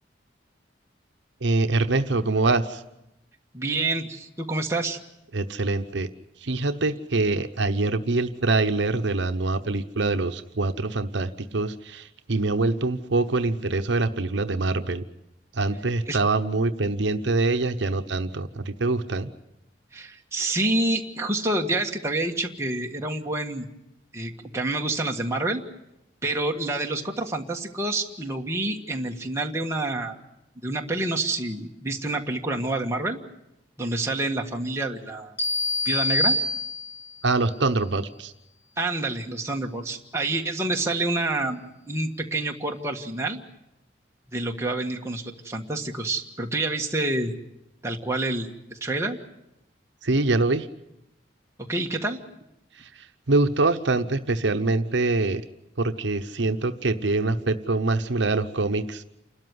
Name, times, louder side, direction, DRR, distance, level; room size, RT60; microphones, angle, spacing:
voice 1, 1.4-2.8 5.3-6.1 6.4-15.0 15.5-19.3 37.2-38.3 50.0-50.7 53.3-55.4 55.8-59.1, right 3 dB, 70° right, 8 dB, 0.9 m, -24 dB
voice 2, 3.5-5.0 16.1-16.2 19.9-23.6 24.1-25.6 26.2-30.2 30.6-33.2 33.8-35.3 35.8-36.4 38.8-43.4 44.3-47.3 47.8-49.2 51.7-52.2, right 2 dB, 15° right, 1 dB, 1.6 m, -28 dB
sound 1, 35.4-37.2, left 2 dB, 10° left, 2.3 m, -25 dB
28.5 x 13.0 x 9.6 m, 0.87 s
head